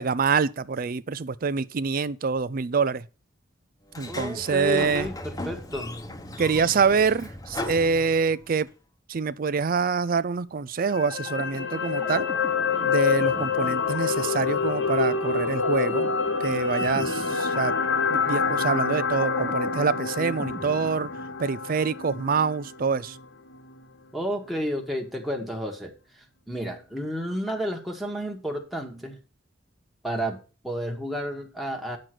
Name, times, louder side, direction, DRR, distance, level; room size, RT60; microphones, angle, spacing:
voice 1, 0.0-3.1 4.0-5.1 6.4-8.7 9.1-12.3 12.8-16.1 16.4-17.7 18.1-21.1 21.4-23.2, right 5 dB, 50° right, 0.5 m, -25 dB
Sliding door, 3.9-8.6, left 1 dB, 20° left, 1.0 m, -37 dB
voice 2, 4.1-6.0 24.1-29.2 30.0-32.0, equal, ahead, 1.3 m, -31 dB
sound 1, 10.9-23.2 23.5-23.7, left 5 dB, 75° left, 1.2 m, -27 dB
sound 2, 11.1-21.8, right 1 dB, 20° right, 0.8 m, -43 dB
9.1 x 6.4 x 5.9 m
head